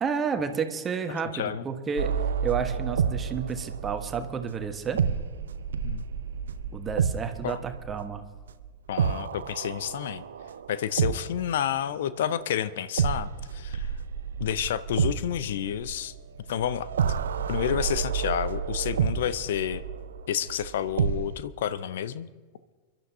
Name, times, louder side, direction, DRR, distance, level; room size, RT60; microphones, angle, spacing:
voice 1, 0.0-2.1 2.4-5.0 6.7-8.2, right 6 dB, 20° right, 6 dB, 1.3 m, -30 dB
voice 2, 1.3-1.6 5.8-6.0 7.4-7.6 8.9-10.2 10.7-13.9 14.4-16.1 16.5-16.9 17.5-19.8 20.3-22.3, left 10 dB, 60° left, 15 dB, 0.6 m, -29 dB
sound 1, 2.0-11.8 13.0-21.4, right 7 dB, 65° right, 0.7 m, -30 dB
29.0 x 12.0 x 2.8 m, 1.4 s
figure-of-eight pair, 90°, 0 cm